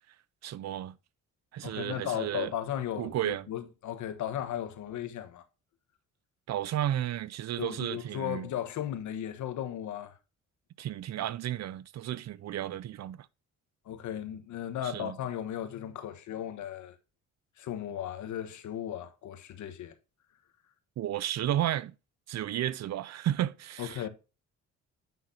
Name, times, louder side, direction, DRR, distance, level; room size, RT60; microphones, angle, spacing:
voice 1, 0.4-1.0 1.5-2.5 3.0-3.5 6.5-8.5 10.8-13.3 14.8-15.2 21.0-21.9 22.3-24.1, right 12 dB, 60° right, 0.5 m, -33 dB
voice 2, 1.6-5.4 7.6-10.2 13.8-17.0 17.6-19.9 23.8-24.1, left 10 dB, 75° left, 1.3 m, -36 dB
9.0 x 5.9 x 2.7 m
cardioid pair, 90°, 30 cm